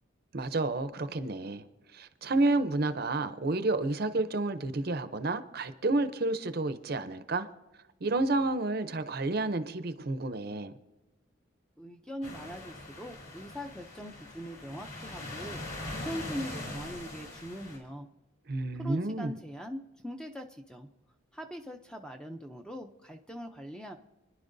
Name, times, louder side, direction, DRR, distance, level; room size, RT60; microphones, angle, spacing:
voice 1, 0.3-1.6 1.9-7.5 8.0-10.7 18.5-19.3, right 2 dB, 50° right, 11 dB, 0.6 m, -30 dB
voice 2, 11.8-15.6 15.9-18.1 18.8-20.9 21.3-24.0, equal, 5° left, 5 dB, 0.5 m, -41 dB
sound 1, 12.2-17.8, left 1 dB, 45° left, 3.9 m, -42 dB
29.0 x 10.5 x 2.6 m, 1.1 s
head